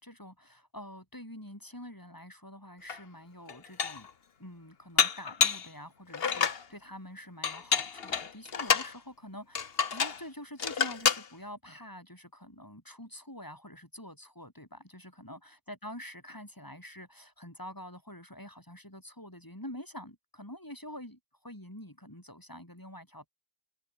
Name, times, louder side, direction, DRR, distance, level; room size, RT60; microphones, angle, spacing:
voice 1, 0.0-4.1 4.4-23.3, left 1 dB, 20° left, 5.0 m, -46 dB
Dishes pots and pans, 2.9-3.0 3.5-4.1 5.0-5.7 6.1-6.6 7.4-8.9 9.5-10.2 10.6-11.3, left 6 dB, 70° left, 1.4 m, -28 dB
open air
omnidirectional pair, 1.1 m